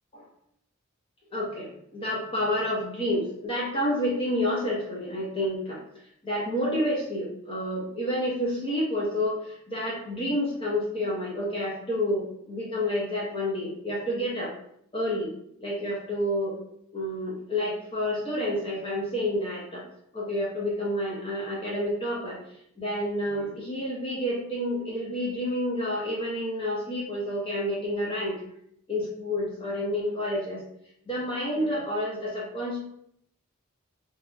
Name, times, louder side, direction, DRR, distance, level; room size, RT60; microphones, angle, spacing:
voice 1, 1.3-5.8 6.2-14.5 14.9-15.3 15.6-16.6 16.9-19.8 20.1-22.4 22.8-28.4 28.9-30.6 31.1-32.8, left 1 dB, 25° left, -5 dB, 0.5 m, -29 dB
2.8 x 2.1 x 2.3 m, 0.72 s
head